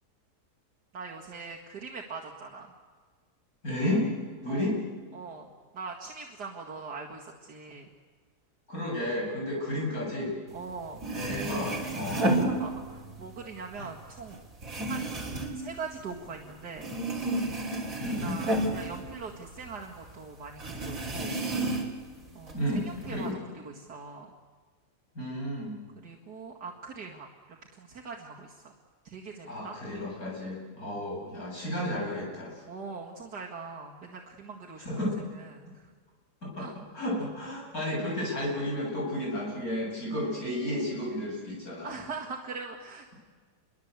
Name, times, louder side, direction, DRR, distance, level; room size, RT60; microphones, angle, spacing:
voice 1, 0.9-2.7 4.5-4.7 5.1-7.9 9.5-9.6 10.5-11.0 12.2-14.4 14.9-16.9 18.2-21.4 22.3-24.3 26.0-28.7 29.0-29.8 30.8-31.0 32.7-35.9 36.6-36.7 41.8-43.1, right 4 dB, 80° right, -2 dB, 2.6 m, -42 dB
voice 2, 3.6-4.1 4.4-4.8 8.7-10.3 11.1-12.6 13.8-13.9 18.0-18.4 22.5-23.4 25.2-25.7 29.4-32.6 34.9-35.1 36.4-36.7 36.9-42.0, left 1 dB, 60° left, -3 dB, 8.6 m, -32 dB
sound 1, 10.7-10.8 11.0-13.2 13.6-16.5 16.8-19.8 20.0-20.1 20.6-22.1 22.5-23.2, right 2 dB, 55° right, 3.9 m, -31 dB
28.0 x 23.5 x 8.2 m, 1.5 s
omnidirectional pair, 1.7 m